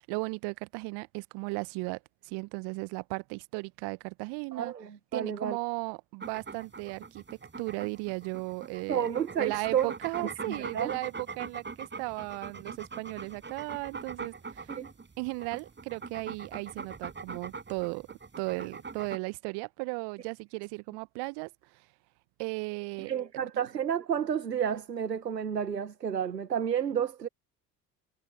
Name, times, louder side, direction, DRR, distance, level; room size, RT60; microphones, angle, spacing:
voice 1, 0.0-4.7 5.1-9.1 9.4-14.8 15.2-18.1 18.4-21.5 22.4-23.1 23.5-23.6, right 30 dB, 55° right, 1.2 m, -36 dB
voice 2, 4.5-5.6 8.9-9.9 10.2-10.9 14.7-14.9 23.0-27.3, right 8 dB, 85° right, 1.4 m, -31 dB
sound 1, 6.2-19.2, right 4 dB, 20° right, 8.0 m, -42 dB
figure-of-eight pair, 60°, 48 cm